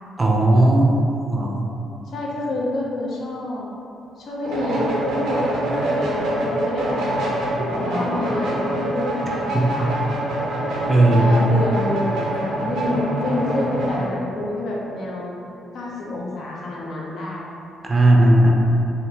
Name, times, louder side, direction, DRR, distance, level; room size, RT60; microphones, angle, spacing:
voice 1, 0.2-0.9 1.3-1.6 9.5-9.7 10.9-11.3 17.8-18.5, right 1 dB, 25° right, -1 dB, 0.5 m, -15 dB
voice 2, 2.1-3.7 4.2-7.3 7.7-10.0 11.1-15.3 15.7-17.5, left 2 dB, 65° left, -4 dB, 0.6 m, -28 dB
sound 1, 4.4-14.1, right 1 dB, 85° right, 0.7 m, -25 dB
3.6 x 2.5 x 2.8 m, 2.8 s
cardioid pair, 90°, 0 cm